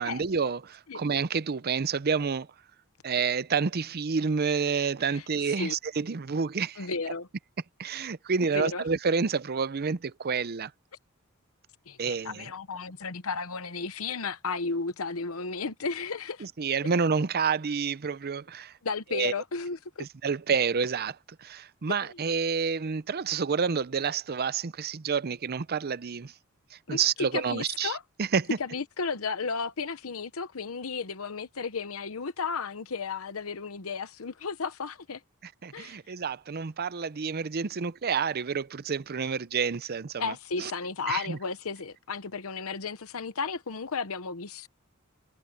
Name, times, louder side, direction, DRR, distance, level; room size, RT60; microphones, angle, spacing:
voice 1, 0.0-2.5 3.0-6.9 7.8-10.7 12.0-12.5 16.4-18.7 19.1-19.3 20.0-26.3 26.7-28.5 35.4-40.7 41.1-41.4, right 5 dB, 50° right, 0.6 m, -29 dB
voice 2, 6.8-7.3 8.4-8.8 11.9-16.5 18.8-20.1 22.0-22.1 26.9-28.0 28.6-35.2 35.7-36.0 40.2-44.7, left 4 dB, 80° left, 0.9 m, -34 dB
head